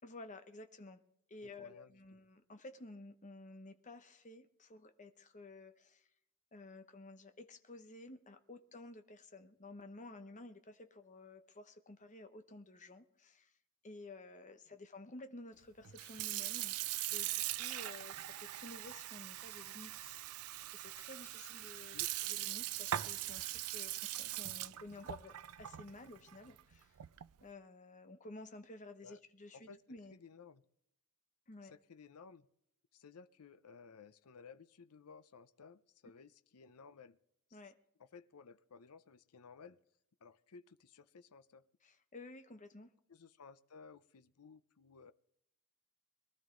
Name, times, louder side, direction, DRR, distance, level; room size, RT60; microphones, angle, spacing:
voice 1, 0.0-1.0 1.3-6.1 6.5-13.5 13.8-16.7 17.1-22.0 22.3-27.0 27.4-30.1 31.5-31.7 37.5-37.7 41.8-42.9, left 2 dB, 35° left, 8 dB, 1.0 m, -53 dB
voice 2, 1.4-2.0 21.9-22.1 29.0-29.2 29.5-29.8 30.1-30.6 31.6-32.5 32.9-37.2 37.5-37.6 38.0-39.8 40.2-41.6 43.1-45.1, left 5 dB, 80° left, 13 dB, 0.6 m, -57 dB
Sink (filling or washing) / Fill (with liquid), 15.8-27.4, right 14 dB, 75° right, 0.4 m, -41 dB
22.5 x 12.5 x 3.8 m, 0.78 s
head